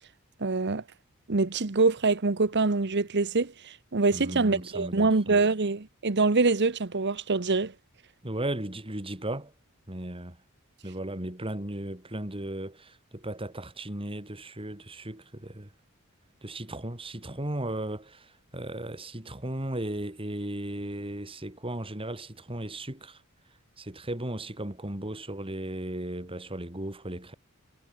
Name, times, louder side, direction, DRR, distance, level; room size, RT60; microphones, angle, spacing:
voice 1, 0.4-0.8 1.3-7.7, right 3 dB, 55° right, 1.0 m, -25 dB
voice 2, 4.1-5.4 8.2-9.5 9.9-10.4 10.8-15.7 16.4-23.2 23.8-27.3, right 1 dB, 25° right, 3.1 m, -36 dB
head